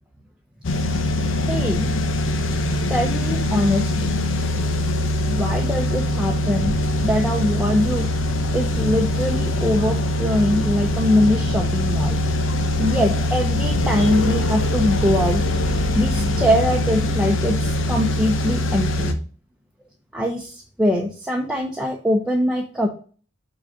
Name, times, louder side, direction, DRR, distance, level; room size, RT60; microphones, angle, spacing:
sound 1, 0.6-19.1, left 1 dB, 75° left, 0.8 m, -22 dB
voice 1, 1.5-1.9 2.9-4.1 5.3-6.8 7.0-8.1 8.5-12.2 12.8-15.4 15.9-19.1 20.1-22.9, left 1 dB, 5° right, 0 dB, 0.8 m, -22 dB
6.3 x 4.0 x 5.0 m, 0.39 s
head